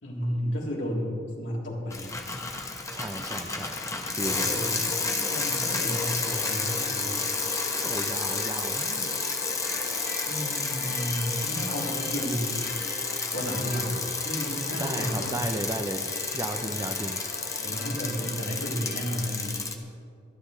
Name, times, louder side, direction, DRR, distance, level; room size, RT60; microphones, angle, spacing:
voice 1, 0.0-2.1 4.2-7.2 10.2-12.5 13.3-14.0 14.2-15.4 17.6-19.7, equal, 85° left, -4 dB, 3.5 m, -32 dB
Bicycle, 1.9-19.7, left 4 dB, 15° left, 1.0 m, -31 dB
voice 2, 2.9-3.8 4.2-4.6 7.8-9.1 14.7-16.1 16.3-17.2, right 1 dB, 20° right, 7 dB, 0.6 m, -34 dB
sound 1, 5.8-19.5, left 2 dB, 50° left, 1.3 m, -42 dB
24.5 x 10.0 x 3.3 m, 2.4 s
head